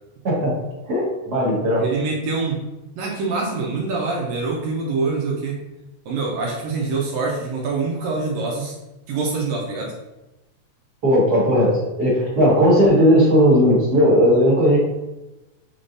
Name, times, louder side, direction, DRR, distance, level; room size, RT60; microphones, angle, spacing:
voice 1, 0.8-1.8 11.0-14.8, equal, 50° right, -6 dB, 1.2 m, -16 dB
voice 2, 1.8-2.6 3.0-5.6 6.1-8.8 9.1-9.9, right 3 dB, 75° right, -1 dB, 1.8 m, -25 dB
5.9 x 3.4 x 2.6 m, 1.0 s
omnidirectional pair, 3.6 m